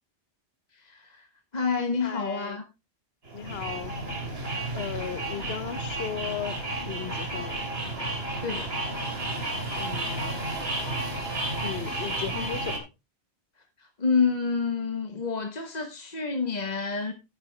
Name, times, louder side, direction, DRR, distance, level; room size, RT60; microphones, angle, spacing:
voice 1, 0.7-2.7 8.4-8.7 13.8-17.1, left 5 dB, 40° left, 1.2 m, -28 dB
voice 2, 2.0-2.6 3.3-3.9 4.7-7.6 9.8-10.4 11.6-12.9, left 8 dB, 65° left, 1.0 m, -36 dB
sound 1, 3.3-12.8, right 2 dB, 65° right, 2.7 m, -32 dB
10.5 x 9.7 x 3.2 m
omnidirectional pair, 1.1 m